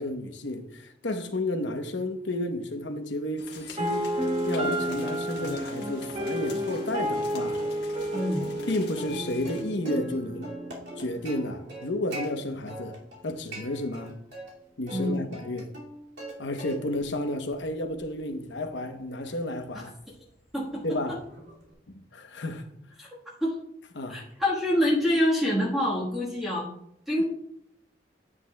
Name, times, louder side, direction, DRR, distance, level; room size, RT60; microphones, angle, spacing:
voice 1, 0.0-4.1 4.5-7.6 8.7-10.5 11.0-13.0 13.2-14.1 14.8-15.7 16.4-19.9 20.8-21.2 22.1-22.6 23.9-24.2, left 1 dB, 85° left, 0.9 m, -32 dB
sound 1, 3.4-9.6, left 5 dB, 65° left, 1.3 m, -47 dB
sound 2, 3.8-11.8, equal, 35° right, 1.0 m, -31 dB
Plucked string instrument, 6.7-7.3 7.6-7.7 8.1-10.1 10.4-12.3 12.7-13.2 13.5-14.5 14.9-16.3 16.6-17.1 17.5-21.7, right 1 dB, 75° right, 2.4 m, -43 dB
voice 2, 8.1-8.4 14.9-15.2 19.7-19.8 20.5-21.2 23.0-23.1 23.4-23.5 24.1-26.7 27.1-27.2, left 1 dB, ahead, 1.4 m, -26 dB
9.7 x 8.1 x 2.3 m
head